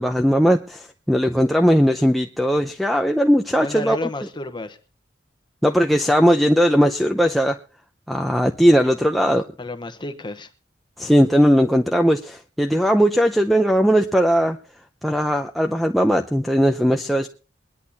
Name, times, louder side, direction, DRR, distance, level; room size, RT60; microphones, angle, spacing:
voice 1, 0.0-4.0 5.6-7.6 8.1-9.4 11.0-14.6 15.0-17.3, equal, ahead, 3 dB, 0.6 m, -18 dB
voice 2, 3.6-4.8 9.6-10.5, left 2 dB, 25° left, 8 dB, 1.0 m, -31 dB
22.0 x 11.0 x 2.8 m, 0.36 s
head